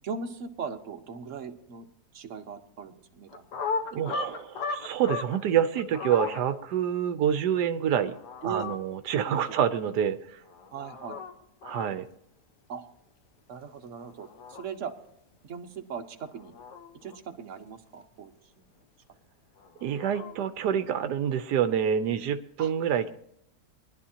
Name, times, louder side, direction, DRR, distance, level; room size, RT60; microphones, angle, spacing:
voice 1, 0.0-1.9 2.1-3.5 3.9-4.2 8.4-8.7 9.2-9.6 10.7-11.2 12.7-12.9 13.5-14.9 15.4-16.5 17.0-18.7 22.6-22.7, right 6 dB, 50° right, 4 dB, 1.3 m, -39 dB
sound 1, 3.3-5.4 5.7-6.4 8.0-8.8 10.5-11.3 11.6-11.9 14.0-14.6 16.2-17.2 19.6-20.4, left 4 dB, 85° left, 1.7 m, -36 dB
voice 2, 3.9-8.2 8.4-10.4 11.6-12.0 19.8-23.1, right 9 dB, 85° right, 10 dB, 1.3 m, -27 dB
22.0 x 11.5 x 2.8 m, 0.74 s
omnidirectional pair, 1.7 m